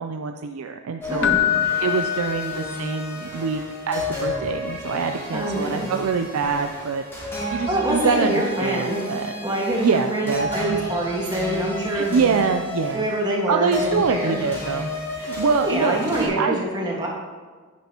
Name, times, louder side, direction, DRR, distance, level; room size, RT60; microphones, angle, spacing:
voice 1, 0.0-1.3 1.8-7.0 7.5-8.3 8.6-9.3 9.8-10.5 11.9-13.1 13.5-14.9 15.2-16.6, right 5 dB, 80° right, 6 dB, 0.4 m, -24 dB
sound 1, 1.0-16.3, left 2 dB, 10° left, 2.8 m, -32 dB
voice 2, 1.1-1.4 5.3-5.9 7.4-9.0 9.4-12.2 12.9-14.4 15.6-17.1, right 1 dB, 20° right, -3 dB, 1.6 m, -25 dB
Keyboard (musical), 1.2-3.2 6.4-6.6, left 11 dB, 55° left, 0.4 m, -24 dB
9.6 x 9.3 x 2.9 m, 1.5 s
head